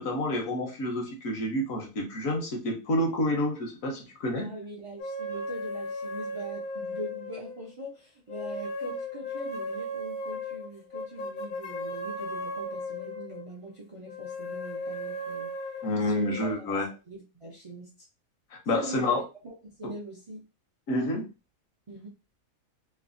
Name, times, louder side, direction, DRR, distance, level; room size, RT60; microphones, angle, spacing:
voice 1, 0.0-4.5 15.8-16.9 18.5-19.2 19.8-19.9 20.9-21.3, left 1 dB, 70° left, 2 dB, 1.2 m, -29 dB
voice 2, 4.3-15.5 16.0-16.3 16.7-17.9 18.7-20.4 21.9-22.1, right 1 dB, 55° right, -3 dB, 0.3 m, -42 dB
sound 1, 5.0-7.8 8.3-13.5 14.1-16.5, left 1 dB, 50° left, 0.6 m, -36 dB
3.1 x 2.1 x 2.5 m, 0.29 s
omnidirectional pair, 1.5 m